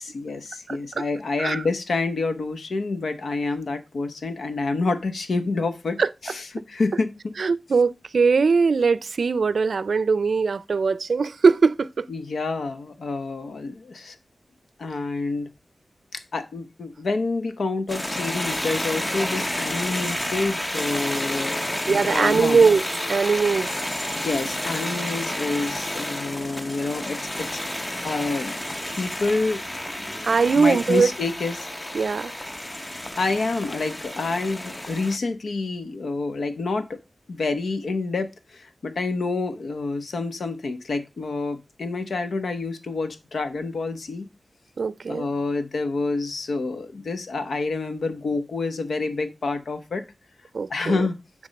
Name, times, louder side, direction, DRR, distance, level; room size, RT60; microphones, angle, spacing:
voice 1, 0.1-7.1 12.1-14.2 14.8-15.5 16.1-22.6 24.1-28.5 29.0-29.6 30.5-31.7 33.2-37.0 37.3-44.3 45.1-50.0 50.7-51.1, left 3 dB, 90° left, 1.0 m, -28 dB
voice 2, 7.4-12.1 21.9-22.8 23.1-23.7 30.2-31.1 31.9-32.3 44.8-45.3 50.5-51.1, right 5 dB, 80° right, 0.4 m, -20 dB
sound 1, 17.9-35.2, left 1 dB, 15° left, 0.7 m, -30 dB
9.7 x 3.5 x 5.2 m
wide cardioid pair, 85°, 0 cm